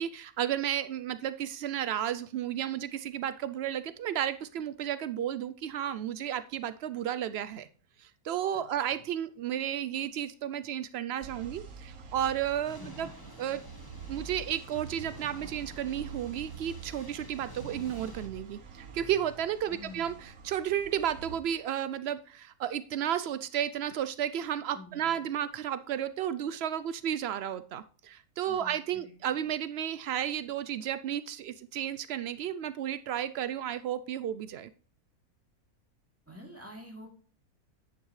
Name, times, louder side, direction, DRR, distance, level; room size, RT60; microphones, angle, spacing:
voice 1, 0.0-7.7 8.0-13.1 13.4-13.6 14.1-34.7, right 10 dB, 80° right, 14 dB, 0.5 m, -33 dB
voice 2, 8.5-9.0 12.8-13.1 19.7-20.2 24.7-25.2 28.5-29.1 36.3-37.1, equal, 10° right, -1 dB, 2.9 m, -48 dB
sound 1, 11.2-21.4, right 5 dB, 60° right, 1.6 m, -46 dB
sound 2, 12.6-18.3, left 2 dB, 20° left, 0.8 m, -51 dB
10.5 x 8.7 x 3.2 m, 0.42 s
omnidirectional pair, 1.6 m